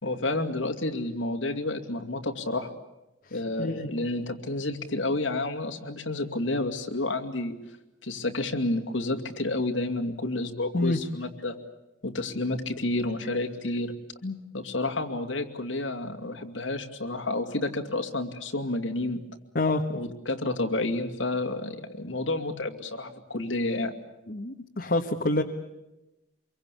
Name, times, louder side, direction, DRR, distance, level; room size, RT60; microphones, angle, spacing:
voice 1, 0.0-2.7 3.3-7.5 8.0-11.6 12.0-13.9 14.5-19.2 19.9-23.9, left 2 dB, 90° left, 4 dB, 2.6 m, -30 dB
voice 2, 24.3-25.4, left 2 dB, 55° left, 2 dB, 1.5 m, -27 dB
26.0 x 23.5 x 8.5 m, 0.95 s
head